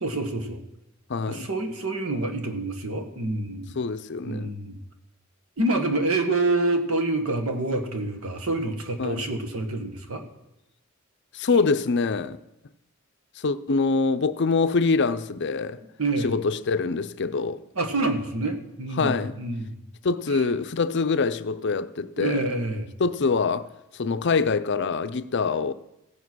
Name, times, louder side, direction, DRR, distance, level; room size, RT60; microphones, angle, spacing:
voice 1, 0.0-0.6 1.3-3.8 4.2-4.8 5.6-10.2 16.0-16.3 17.7-19.7 22.2-22.9, right 2 dB, 80° right, 1.5 m, -27 dB
voice 2, 1.1-1.5 3.8-4.5 9.0-9.2 11.3-12.4 13.4-15.8 16.2-17.6 19.0-19.3 20.0-22.5 23.0-23.7 23.9-25.7, left 4 dB, 55° left, 0.5 m, -24 dB
16.0 x 7.4 x 6.2 m
head